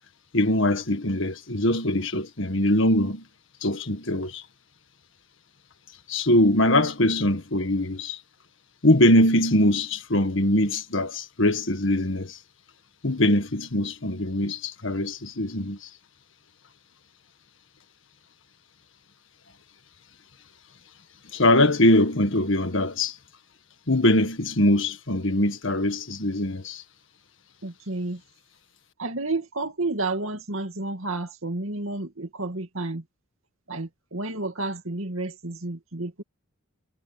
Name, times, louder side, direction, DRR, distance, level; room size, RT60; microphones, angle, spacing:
voice 1, 0.3-3.2 3.6-4.4 6.1-8.2 8.8-12.4 13.0-15.9 21.3-23.1 23.9-26.8, left 1 dB, 60° left, 1.8 m, -22 dB
voice 2, 27.6-28.2 29.0-33.0 33.7-36.2, right 2 dB, 70° right, 2.4 m, -31 dB
head